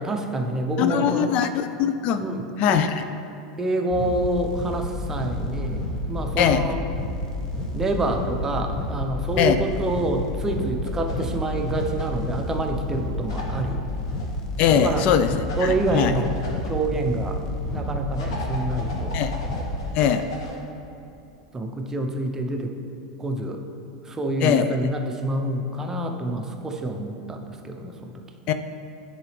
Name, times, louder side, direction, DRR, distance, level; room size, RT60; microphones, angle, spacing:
voice 1, 0.0-1.3 2.2-2.8 3.6-5.8 6.1-6.8 7.7-13.8 14.8-15.1 15.6-16.4 16.7-17.4 17.7-19.2 21.5-22.7 23.2-23.6 24.0-28.2, right 2 dB, 20° right, 4 dB, 0.7 m, -27 dB
voice 2, 0.8-2.2 2.6-3.0 6.4-6.7 9.4-9.6 14.6-15.3 15.6-16.2 19.1-19.3 19.9-20.2 24.4-24.7 28.5-28.6, left 8 dB, 50° left, 9 dB, 0.3 m, -21 dB
sound 1, 3.9-19.9, left 1 dB, 30° left, 1.1 m, -30 dB
sound 2, 10.8-12.2 13.3-14.2 15.5-16.7 18.1-20.6, left 2 dB, 80° left, 1.2 m, -38 dB
9.7 x 3.9 x 3.3 m, 2.8 s
hypercardioid pair, 100°, 3 cm